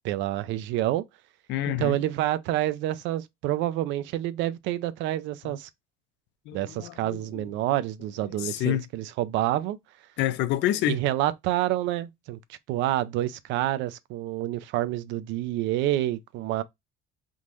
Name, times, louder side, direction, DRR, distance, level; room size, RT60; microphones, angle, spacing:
voice 1, 0.0-1.0 1.7-5.7 6.5-9.8 10.9-16.6, right 14 dB, 85° right, 0.5 m, -28 dB
voice 2, 1.5-2.0 5.5-5.6 6.5-7.4 8.3-8.8 10.2-11.0, left 14 dB, 75° left, 0.4 m, -28 dB
3.6 x 2.5 x 3.0 m
cardioid pair, 115°, 19 cm